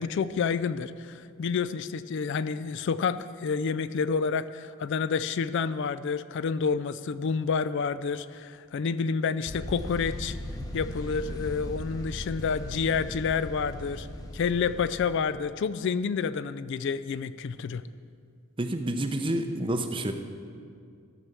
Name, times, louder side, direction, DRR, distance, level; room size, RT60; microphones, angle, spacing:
voice 1, 0.0-10.4 10.7-14.1 14.3-17.8, left 5 dB, 55° left, 15 dB, 0.3 m, -29 dB
sound 1, 9.5-15.1, equal, 15° left, 0.8 m, -38 dB
voice 2, 18.6-20.1, right 1 dB, 25° right, 7 dB, 0.6 m, -29 dB
14.0 x 6.1 x 6.8 m, 2.3 s
head